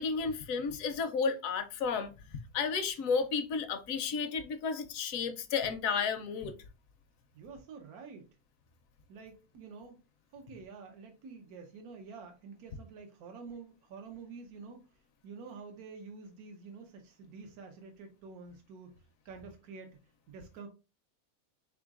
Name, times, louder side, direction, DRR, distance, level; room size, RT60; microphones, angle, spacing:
voice 1, 0.0-2.1 2.5-6.5, left 5 dB, 70° left, 0.9 m, -32 dB
voice 2, 7.3-8.3 9.1-10.0 10.3-14.9 15.2-18.9 19.2-20.0 20.3-20.7, right 5 dB, 85° right, 1.2 m, -48 dB
3.8 x 3.7 x 2.3 m
omnidirectional pair, 1.5 m